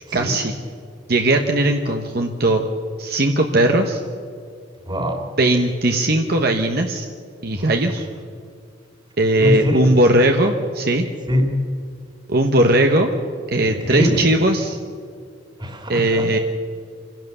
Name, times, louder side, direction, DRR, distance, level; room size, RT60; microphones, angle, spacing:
voice 1, 0.1-0.5 1.1-2.6 3.0-4.0 5.4-7.1 7.4-8.1 9.2-11.0 12.3-13.1 13.5-14.8 15.9-16.4, right 1 dB, 55° right, 4 dB, 1.2 m, -18 dB
voice 2, 4.9-5.3 7.5-7.7 9.4-10.0 11.3-11.7 13.6-14.3 15.6-16.3, left 1 dB, 25° right, 4 dB, 2.6 m, -23 dB
26.0 x 16.5 x 6.8 m, 2.3 s
head